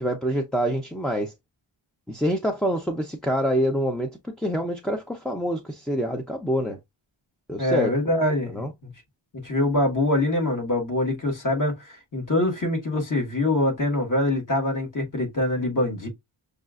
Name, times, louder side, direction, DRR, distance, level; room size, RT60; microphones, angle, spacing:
voice 1, 0.0-1.3 2.1-6.8 7.5-7.9 8.5-8.7, equal, ahead, 0.5 m, -26 dB
voice 2, 7.6-8.9 9.4-16.1, left 1 dB, 40° left, 1.5 m, -24 dB
6.5 x 2.4 x 2.4 m
wide cardioid pair, 125°, 49 cm